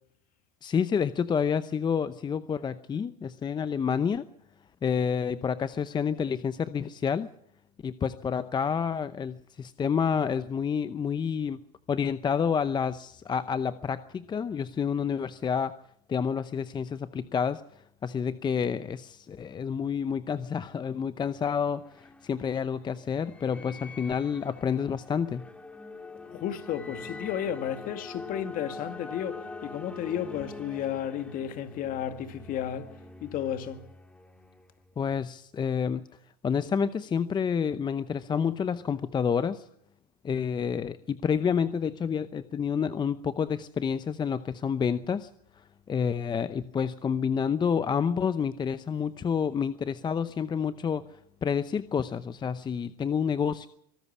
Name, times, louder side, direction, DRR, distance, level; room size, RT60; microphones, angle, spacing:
voice 1, 0.6-4.3 4.8-7.3 7.8-11.6 11.9-15.7 16.1-17.6 18.0-25.5 35.0-36.0 36.4-39.7 40.2-45.3 45.6-53.7, left 7 dB, 25° left, 0.7 m, -29 dB
sound 1, 21.6-35.0, left 3 dB, 5° left, 1.8 m, -45 dB
voice 2, 26.3-33.8, left 10 dB, 50° left, 2.1 m, -33 dB
24.0 x 13.0 x 8.4 m
supercardioid pair, 105°, 19 cm